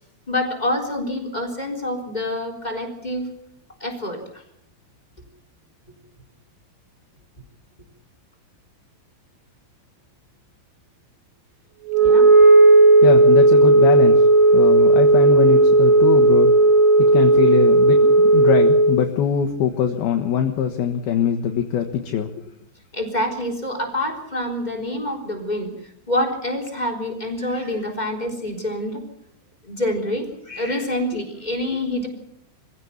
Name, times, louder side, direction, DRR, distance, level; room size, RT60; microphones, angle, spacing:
voice 1, 0.3-3.3 3.8-4.4 12.0-12.3 22.9-25.7 26.1-29.0 29.6-32.1, left 1 dB, 10° left, 5 dB, 3.1 m, -26 dB
Wind instrument woodwind instrument, 11.9-19.0, right 2 dB, 65° right, 6.1 m, -13 dB
voice 2, 13.0-14.2 14.5-16.5 17.0-22.3, left 8 dB, 65° left, 4 dB, 2.8 m, -22 dB
25.0 x 16.0 x 7.2 m, 0.75 s
omnidirectional pair, 5.6 m